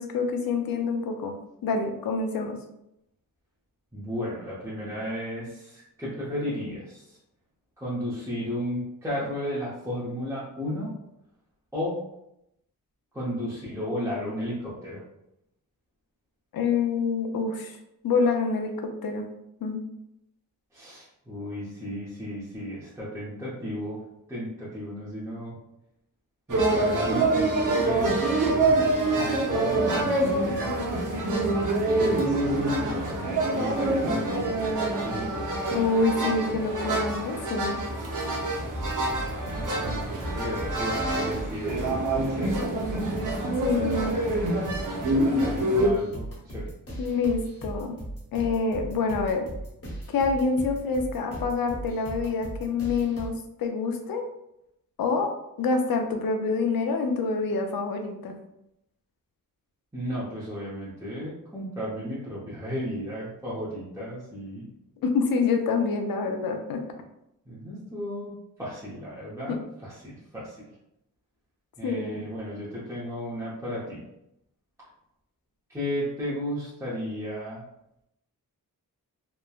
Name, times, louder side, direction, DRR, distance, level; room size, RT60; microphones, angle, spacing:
voice 1, 0.0-1.3 1.6-2.6 16.5-17.8 18.0-19.2 19.6-19.8 35.7-37.8 43.6-44.1 47.0-48.0 48.3-49.4 50.1-53.3 53.6-54.2 55.0-55.3 55.6-58.3 65.0-66.8 69.5-69.6 71.8-72.2, left 4 dB, 85° left, 4 dB, 0.5 m, -26 dB
voice 2, 3.9-7.2 7.8-10.9 11.7-12.0 13.1-15.0 20.7-24.0 24.3-25.6 26.5-30.7 32.0-34.4 35.0-35.7 39.6-42.6 43.7-44.5 45.4-46.7 59.9-64.7 67.5-69.6 69.8-70.6 71.8-74.0 75.7-77.6, equal, 10° right, -9 dB, 0.7 m, -34 dB
sound 1, 26.5-45.9, right 2 dB, 65° right, 0.7 m, -26 dB
sound 2, 38.8-53.3, right 1 dB, 40° left, 1.0 m, -38 dB
3.1 x 2.1 x 2.3 m, 0.82 s
wide cardioid pair, 95°, 34 cm